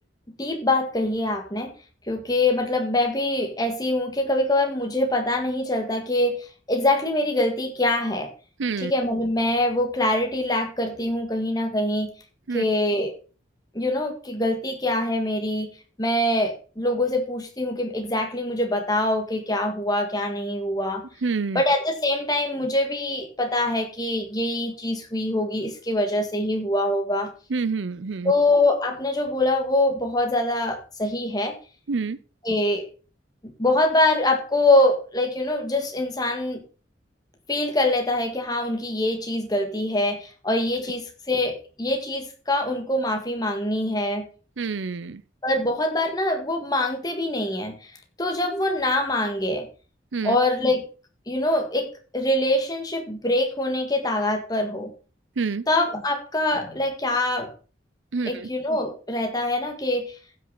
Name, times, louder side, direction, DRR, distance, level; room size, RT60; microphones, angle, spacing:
voice 1, 0.4-1.7 2.1-8.3 8.8-12.1 12.5-13.1 13.7-15.7 16.0-21.0 21.5-27.3 28.2-31.5 32.4-32.9 33.6-36.6 37.5-44.3 45.4-47.9 48.2-49.7 50.2-50.9 51.3-54.9 55.7-57.5 58.2-60.2, left 1 dB, 20° left, 1.7 m, -24 dB
voice 2, 8.6-8.9 12.5-12.6 21.2-21.6 27.5-28.3 31.9-32.2 44.6-45.2 50.1-50.4 55.4-55.6 58.1-58.5, right 4 dB, 85° right, 0.6 m, -27 dB
15.5 x 6.3 x 4.0 m
head